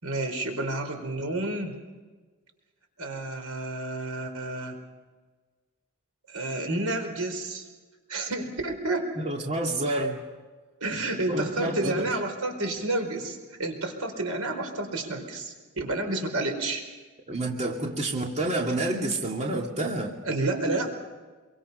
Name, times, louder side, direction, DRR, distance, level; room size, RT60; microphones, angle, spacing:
voice 1, 0.0-1.8 3.0-4.8 6.3-7.7 8.1-9.1 10.8-16.8 20.2-20.9, right 2 dB, 85° right, 5 dB, 4.8 m, -30 dB
voice 2, 9.2-10.2 11.3-12.0 17.3-20.4 20.7-20.9, right 1 dB, 30° right, 0 dB, 2.6 m, -29 dB
27.5 x 24.0 x 5.7 m, 1.3 s
head